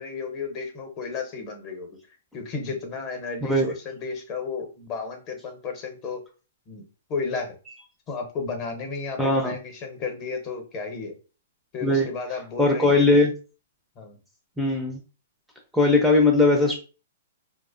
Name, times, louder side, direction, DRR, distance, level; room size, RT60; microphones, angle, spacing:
voice 1, 0.0-2.0 2.3-6.2 6.7-7.5 8.1-11.1 11.7-13.1 14.0-14.2, left 4 dB, 35° left, 4 dB, 0.7 m, -33 dB
voice 2, 9.2-9.5 11.8-12.1 12.6-13.3 14.6-15.0 15.7-16.7, left 2 dB, ahead, 1 dB, 0.4 m, -19 dB
2.5 x 2.0 x 2.4 m, 0.34 s
hypercardioid pair, 130°, 0 cm